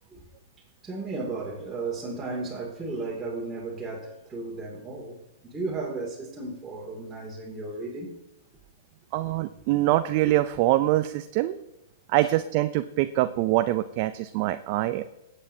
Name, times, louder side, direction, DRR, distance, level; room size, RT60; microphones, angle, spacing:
voice 1, 0.8-5.2 5.4-8.2 12.2-12.3, right 3 dB, 15° right, 2.5 m, -34 dB
voice 2, 9.1-11.6 12.1-15.0, right 15 dB, 45° right, 0.5 m, -24 dB
16.5 x 8.2 x 2.8 m
hypercardioid pair, 115°, 0 cm